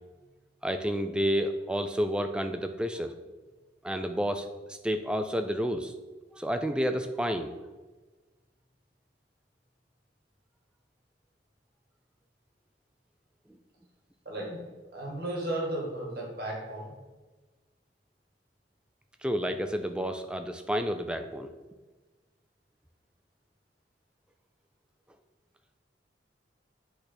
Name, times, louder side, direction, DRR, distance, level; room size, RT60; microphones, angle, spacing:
voice 1, 0.6-3.1 3.8-5.9 6.4-7.5 19.2-21.5, equal, 5° right, 7 dB, 0.3 m, -30 dB
voice 2, 14.2-16.9, right 1 dB, 55° right, -1 dB, 1.6 m, -35 dB
8.1 x 3.3 x 4.3 m, 1.2 s
head